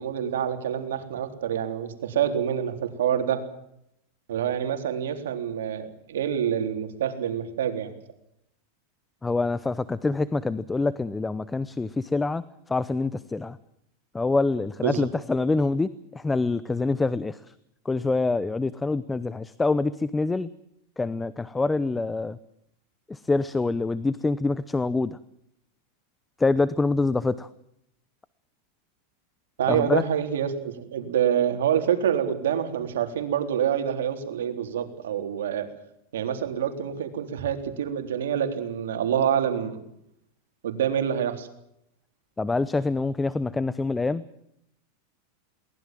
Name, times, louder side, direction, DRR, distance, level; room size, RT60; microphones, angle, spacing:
voice 1, 0.0-3.4 4.3-7.9 14.8-15.1 29.6-35.7 36.1-39.8 40.6-41.5, right 9 dB, 90° right, 6 dB, 3.8 m, -26 dB
voice 2, 9.2-13.6 14.1-17.4 17.8-20.5 21.0-22.4 23.1-25.2 26.4-27.5 29.7-30.0 42.4-44.2, left 3 dB, 10° left, 16 dB, 0.8 m, -26 dB
22.5 x 19.5 x 7.6 m, 0.76 s
supercardioid pair, 135°, 0 cm